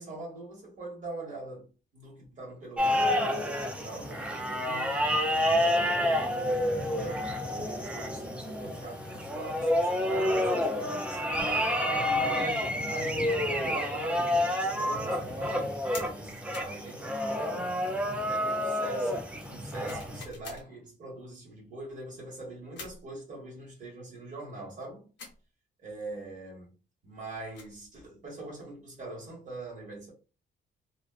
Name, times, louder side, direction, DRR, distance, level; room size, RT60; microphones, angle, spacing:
voice 1, 0.0-5.0 5.3-11.2 12.0-17.7 18.2-25.0 25.8-26.7 27.0-30.1, right 2 dB, 40° right, 1.3 m, -43 dB
sound 1, 2.8-20.2, left 1 dB, 5° right, 0.3 m, -29 dB
sound 2, 15.9-16.1 16.5-16.8 19.9-20.7 22.8-23.1 25.2-25.4 27.3-27.8, left 4 dB, 70° left, 0.8 m, -44 dB
2.5 x 2.3 x 2.3 m
wide cardioid pair, 180°, 19 cm